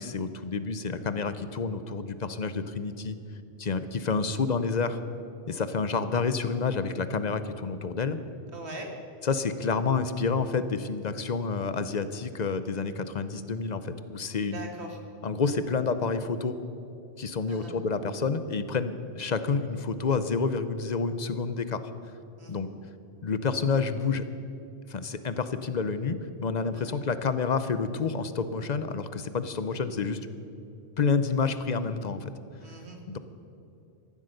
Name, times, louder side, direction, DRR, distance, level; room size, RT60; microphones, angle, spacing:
voice 1, 0.0-3.2 3.6-5.0 5.5-8.2 9.2-14.6 15.2-16.6 17.2-21.8 22.5-22.7 23.2-24.3 24.9-30.2 31.0-32.3 33.1-33.2, left 5 dB, 45° left, 11 dB, 0.7 m, -29 dB
voice 2, 8.5-8.9 14.5-15.0 17.5-17.7 22.4-22.6 26.7-27.0 32.6-33.0, right 1 dB, 75° right, 3 dB, 2.1 m, -41 dB
14.0 x 12.0 x 6.5 m, 2.7 s
omnidirectional pair, 1.1 m